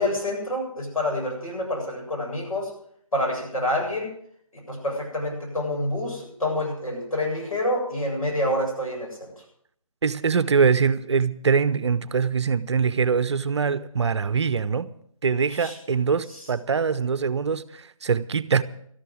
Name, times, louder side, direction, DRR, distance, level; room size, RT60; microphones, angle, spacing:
voice 1, 0.0-2.7 3.1-4.1 4.5-9.4 15.5-15.8 16.3-16.5, left 1 dB, 80° left, 7.5 m, -27 dB
voice 2, 10.0-14.9 15.2-18.6, right 5 dB, 55° right, 0.7 m, -23 dB
13.0 x 12.0 x 6.3 m
figure-of-eight pair, 155°, 18 cm